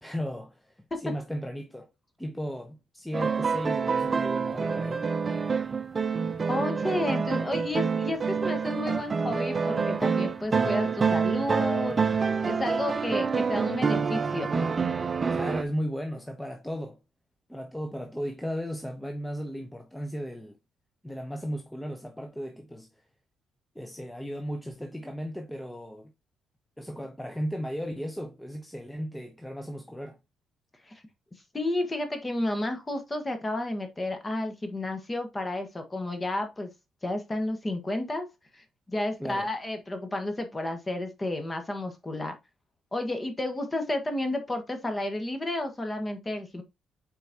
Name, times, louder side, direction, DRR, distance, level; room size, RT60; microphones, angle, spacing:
voice 1, 0.0-1.9 2.2-5.1 15.3-17.0 17.5-20.6 21.0-22.9 23.7-26.1 26.8-30.2 39.2-39.5, equal, 5° left, 0.9 m, -35 dB
sound 1, 3.1-15.6, right 5 dB, 35° right, 0.6 m, -27 dB
voice 2, 6.5-12.2 12.4-14.5 30.9-31.0 31.5-36.7 37.0-38.3 38.5-42.3 42.9-46.6, left 1 dB, 20° left, 1.6 m, -31 dB
8.0 x 4.5 x 2.9 m
cardioid pair, 90°, 0 cm